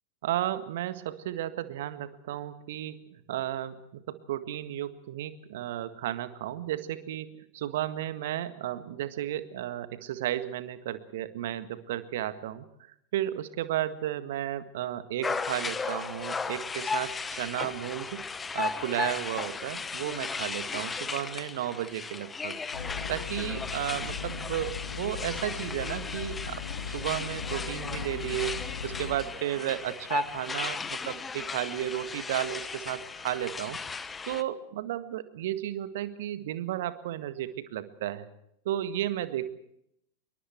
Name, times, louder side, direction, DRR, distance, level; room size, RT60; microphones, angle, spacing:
voice 1, 0.2-3.8 4.1-12.7 13.1-18.2 18.5-22.6 23.1-26.6 26.9-33.8 34.3-38.3 38.7-39.5, right 12 dB, 55° right, 12 dB, 1.7 m, -33 dB
sound 1, 15.2-34.4, left 4 dB, 15° left, 1.2 m, -36 dB
sound 2, 22.7-29.2, left 6 dB, 65° left, 2.1 m, -38 dB
26.5 x 23.0 x 4.6 m, 0.74 s
figure-of-eight pair, 90°, 0 cm